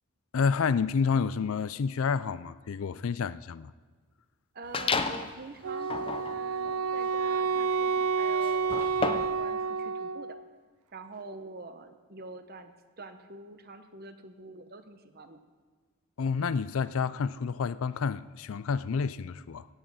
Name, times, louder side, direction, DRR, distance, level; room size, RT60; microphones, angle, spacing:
voice 1, 0.3-3.7 16.2-19.7, left 5 dB, 70° left, 0.4 m, -29 dB
voice 2, 4.5-10.4 10.9-15.4, right 3 dB, 45° right, 1.0 m, -46 dB
sound 1, 4.7-5.3 5.8-9.4, left 4 dB, 25° left, 0.6 m, -33 dB
Wind instrument woodwind instrument, 5.6-10.4, right 5 dB, 75° right, 0.5 m, -29 dB
16.5 x 6.3 x 8.6 m
head